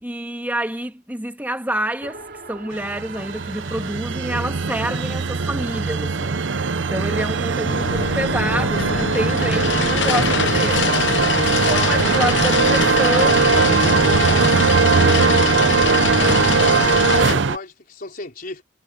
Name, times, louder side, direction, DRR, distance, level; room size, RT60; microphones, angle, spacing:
voice 1, 0.0-2.2 2.5-6.4 6.8-10.9 11.5-13.5, right 1 dB, 10° right, 1.8 m, -28 dB
Race car auto racing, 2.0-8.3, right 2 dB, 55° right, 3.1 m, -41 dB
sound 1, 2.8-17.6, right 4 dB, 75° right, 0.8 m, -20 dB
sound 2, 7.7-17.3, left 6 dB, 70° left, 1.0 m, -24 dB
voice 2, 8.7-9.5 13.3-14.4 17.1-18.6, left 2 dB, 50° left, 4.2 m, -35 dB
head